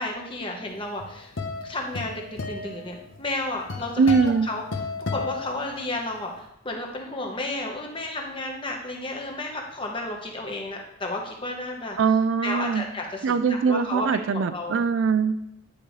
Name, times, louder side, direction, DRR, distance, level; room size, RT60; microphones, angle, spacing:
voice 1, 0.0-1.3 1.6-4.6 5.1-12.0 12.4-14.8, left 2 dB, 25° left, 1 dB, 1.1 m, -32 dB
sound 1, 0.8-6.2, left 3 dB, 80° left, 0.9 m, -34 dB
voice 2, 4.0-4.5 12.0-12.9 13.2-15.4, right 5 dB, 75° right, 11 dB, 0.4 m, -22 dB
9.8 x 5.1 x 3.2 m, 0.85 s
head